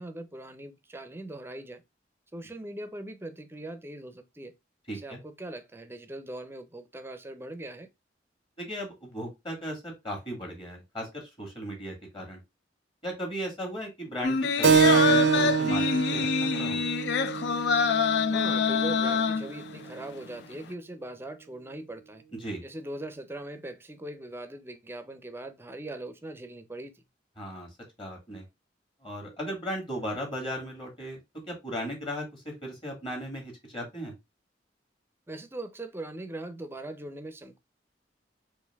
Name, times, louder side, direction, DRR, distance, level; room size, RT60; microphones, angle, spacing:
voice 1, 0.0-1.8 2.3-4.5 4.9-7.9 18.3-22.2 22.6-27.0 35.3-37.6, right 1 dB, 15° right, 0.5 m, -40 dB
voice 2, 4.9-5.2 8.6-12.4 13.0-15.9 16.1-16.8 22.3-22.6 27.4-27.7 28.0-28.4 29.0-31.2 31.5-34.1, equal, 30° left, 1.7 m, -36 dB
sound 1, 14.2-19.9 20.3-20.4, left 6 dB, 70° left, 0.4 m, -26 dB
Keyboard (musical), 14.6-19.7, right 6 dB, 75° right, 0.5 m, -26 dB
4.4 x 2.5 x 3.4 m
head